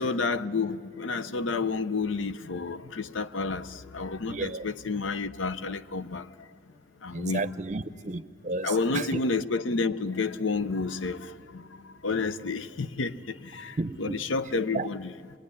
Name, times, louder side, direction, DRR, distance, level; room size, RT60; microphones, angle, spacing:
voice 1, 0.0-6.3 7.0-7.5 7.9-8.0 8.6-15.1, left 4 dB, 85° left, 0.7 m, -30 dB
voice 2, 4.3-4.6 7.1-9.2 13.8-14.2 14.7-14.9, right 3 dB, 40° right, 0.6 m, -32 dB
26.0 x 21.0 x 9.9 m
head